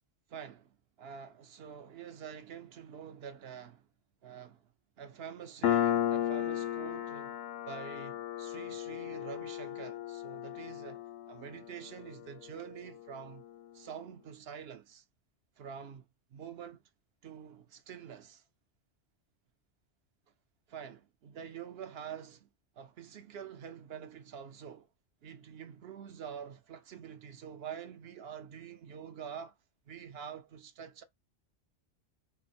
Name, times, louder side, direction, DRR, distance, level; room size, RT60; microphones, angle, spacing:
voice 1, 0.3-3.9 4.2-4.7 5.0-7.4 7.6-13.4 13.7-15.0 15.6-16.0 16.3-16.8 17.2-18.4 20.7-22.5 22.8-24.9 25.2-29.6 29.9-31.0, right 8 dB, 60° right, 0.8 m, -46 dB
Piano, 5.6-12.8, left 11 dB, 65° left, 0.7 m, -34 dB
3.8 x 2.0 x 4.2 m
omnidirectional pair, 1.2 m